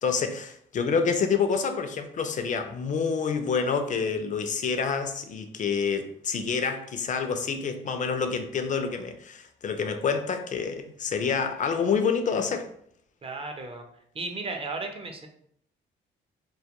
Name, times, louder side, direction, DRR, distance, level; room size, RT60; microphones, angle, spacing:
voice 1, 0.0-12.7, left 5 dB, 40° left, 7 dB, 0.4 m, -27 dB
voice 2, 13.2-13.8 14.1-15.3, right 3 dB, 30° right, 4 dB, 0.5 m, -34 dB
2.2 x 2.1 x 2.8 m, 0.67 s
cardioid pair, 90°, 20 cm